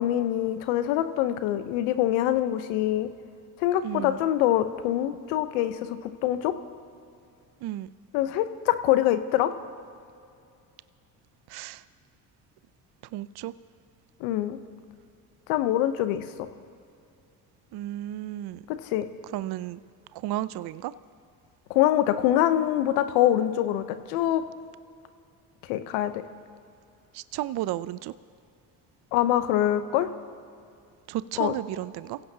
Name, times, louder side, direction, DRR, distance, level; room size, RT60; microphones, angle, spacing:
voice 1, 0.0-3.1 3.6-6.5 8.1-9.5 14.2-14.6 15.5-16.2 18.8-19.1 21.7-24.4 25.7-26.2 29.1-30.1 31.4-31.5, left 12 dB, 75° left, 11 dB, 1.0 m, -24 dB
voice 2, 3.8-4.3 7.6-7.9 11.5-11.8 13.1-13.5 17.7-18.6 19.3-19.8 20.1-20.9 27.1-28.1 31.1-32.2, right 14 dB, 55° right, 17 dB, 0.6 m, -33 dB
29.0 x 16.5 x 2.9 m, 2.4 s
hypercardioid pair, 55°, 48 cm